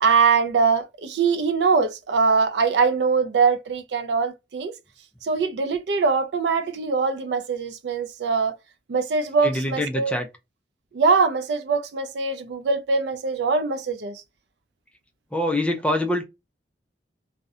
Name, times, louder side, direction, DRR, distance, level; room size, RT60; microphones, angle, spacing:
voice 1, 0.0-4.7 5.2-8.5 8.9-10.1 10.9-14.2, right 5 dB, 70° right, 0.4 m, -22 dB
voice 2, 9.4-10.3 15.3-16.2, left 1 dB, 5° left, 0.4 m, -24 dB
2.6 x 2.1 x 2.4 m
head